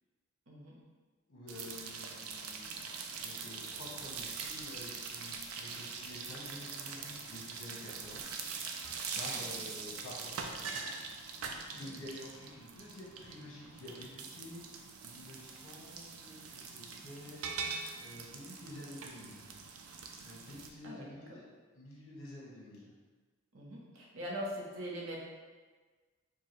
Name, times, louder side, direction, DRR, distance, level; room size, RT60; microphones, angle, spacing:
voice 1, 0.5-0.8 9.3-9.6 11.7-11.9 20.8-21.4 23.5-25.2, equal, 70° right, -3 dB, 0.8 m, -42 dB
voice 2, 1.3-8.2 9.1-10.7 11.7-19.4 20.2-21.5 21.7-22.9, left 1 dB, 65° left, -6 dB, 1.1 m, -49 dB
sound 1, 1.5-20.7, right 5 dB, 85° right, 0.4 m, -43 dB
4.6 x 2.4 x 3.2 m, 1.4 s
head